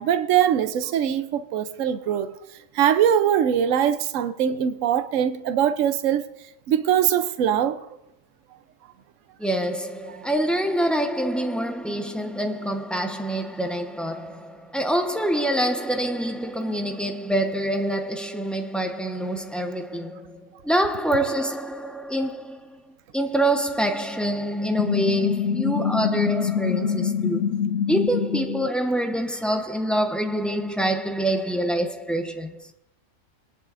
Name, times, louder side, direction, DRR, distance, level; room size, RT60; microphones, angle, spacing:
voice 1, 0.0-2.3 2.7-6.3 6.7-7.8, right 9 dB, 80° right, 1.0 m, -22 dB
voice 2, 9.4-22.8 23.1-32.7, right 1 dB, ahead, 0.7 m, -26 dB
sound 1, 24.8-28.7, left 7 dB, 90° left, 1.1 m, -25 dB
22.5 x 10.5 x 2.5 m
omnidirectional pair, 1.3 m